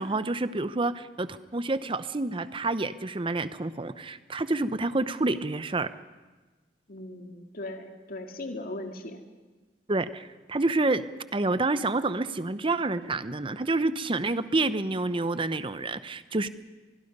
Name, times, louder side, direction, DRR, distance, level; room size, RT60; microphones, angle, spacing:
voice 1, 0.0-5.9 9.9-11.0 11.3-16.5, right 2 dB, 30° right, 13 dB, 0.7 m, -28 dB
voice 2, 6.9-9.2, left 1 dB, 55° left, 4 dB, 2.2 m, -38 dB
24.5 x 21.5 x 5.4 m, 1.3 s
head